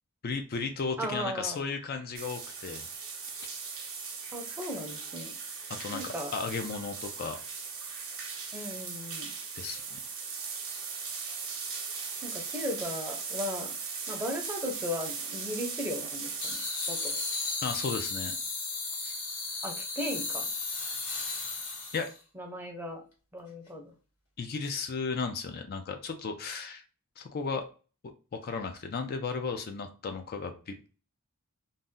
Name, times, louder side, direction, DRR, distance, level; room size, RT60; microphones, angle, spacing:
voice 1, 0.2-2.8 3.4-3.5 5.7-7.4 9.5-10.0 17.6-18.4 19.0-19.1 21.9-22.1 24.4-26.8 27.2-27.7 28.3-30.8, left 4 dB, 45° left, 6 dB, 0.4 m, -35 dB
voice 2, 1.0-1.6 4.3-5.3 5.9-6.3 8.5-9.3 12.2-13.7 14.1-16.6 16.9-17.1 19.6-20.5 22.4-23.0 23.3-23.9, left 1 dB, 10° right, 2 dB, 0.6 m, -36 dB
sound 1, 2.1-17.6, right 5 dB, 65° right, 0.8 m, -39 dB
sound 2, 16.4-22.2, left 3 dB, 75° left, 1.3 m, -35 dB
2.7 x 2.0 x 3.5 m, 0.35 s
head